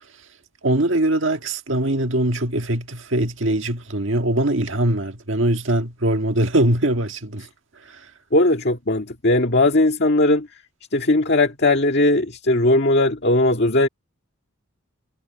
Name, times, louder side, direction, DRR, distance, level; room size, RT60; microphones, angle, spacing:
voice 1, 0.6-7.5 7.8-8.1, right 1 dB, 60° right, 1.8 m, -22 dB
voice 2, 8.3-10.5 10.9-13.9, left 2 dB, 50° left, 1.9 m, -18 dB
head